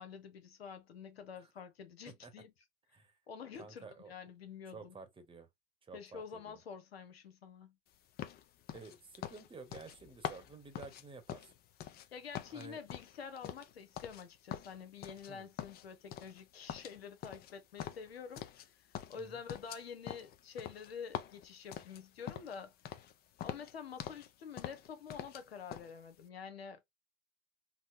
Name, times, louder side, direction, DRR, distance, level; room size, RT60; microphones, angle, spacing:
voice 1, 0.0-2.5 3.3-4.9 5.9-7.8 12.1-18.7 19.1-22.7 23.4-26.8, left 6 dB, 90° left, 0.8 m, -48 dB
voice 2, 3.6-4.1 4.7-5.5 5.8-6.6 8.7-11.5 12.5-12.8 15.3-15.5 19.2-19.4, right 4 dB, 15° right, 0.9 m, -52 dB
sound 1, 8.2-12.1 12.3-14.2 14.5-15.3 15.6-16.4 16.7-18.7 18.9-22.6 22.9-23.1 23.4-24.3 24.6-25.4 25.7-25.9, left 10 dB, 30° left, 0.5 m, -45 dB
4.0 x 2.0 x 2.5 m
hypercardioid pair, 95°, 30 cm